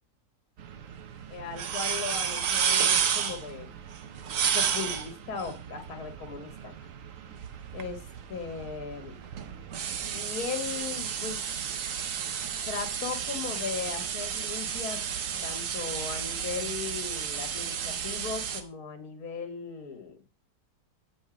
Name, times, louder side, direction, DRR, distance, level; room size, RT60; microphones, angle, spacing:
sound 1, 0.6-18.6, right 7 dB, 60° right, 1.0 m, -32 dB
voice 1, 1.3-3.7 4.5-6.7 7.7-9.2 10.1-11.5 12.7-15.0 15.4-20.2, left 5 dB, 60° left, 3 dB, 1.7 m, -37 dB
7.1 x 5.3 x 4.9 m, 0.30 s
omnidirectional pair, 1.7 m